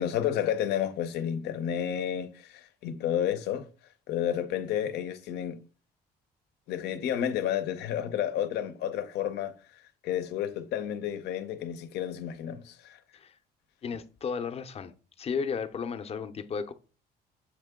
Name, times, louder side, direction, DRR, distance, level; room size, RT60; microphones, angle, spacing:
voice 1, 0.0-3.7 4.1-5.6 6.7-9.5 10.0-13.0, left 10 dB, 80° left, 0.7 m, -31 dB
voice 2, 13.8-14.9 15.2-16.7, left 6 dB, 35° left, 0.6 m, -34 dB
7.3 x 3.6 x 3.6 m
cardioid pair, 110°, 17 cm